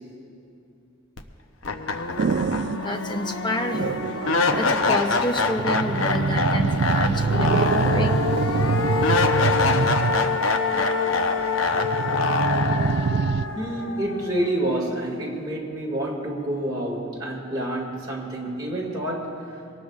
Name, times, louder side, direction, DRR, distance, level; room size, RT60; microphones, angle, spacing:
sound 1, 1.2-1.3 1.6-14.7, left 4 dB, 75° left, 0.8 m, -24 dB
sound 2, 2.2-2.8 3.7-4.7 5.5-10.4 11.7-13.5, right 5 dB, 55° right, 0.3 m, -25 dB
voice 1, 2.7-4.0 4.3-8.2 8.7-9.1, left 1 dB, 20° left, 5 dB, 0.8 m, -29 dB
voice 2, 13.5-19.6, right 1 dB, 20° right, -4 dB, 2.0 m, -28 dB
23.5 x 19.0 x 2.4 m, 2.6 s
head